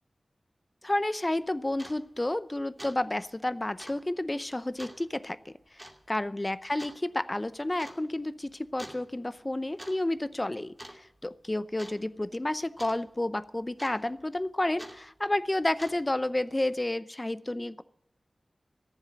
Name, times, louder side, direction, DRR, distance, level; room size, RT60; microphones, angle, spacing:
voice 1, 0.8-17.8, left 1 dB, 25° left, 15 dB, 0.6 m, -31 dB
sound 1, 1.3-1.4 1.7-2.0 2.4-2.5 2.8-3.0 3.2-3.3 3.8-4.0 4.8-5.0 5.8-6.0 6.8-7.0 7.8-8.0 8.8-9.0 9.6-10.0 10.2-10.5 10.8-11.3 11.8-12.0 12.8-13.0 13.8-14.2 14.8-15.0 15.6-16.1, right 1 dB, 10° right, 2.3 m, -45 dB
14.0 x 7.3 x 9.4 m, 0.81 s
wide cardioid pair, 60°, 0 cm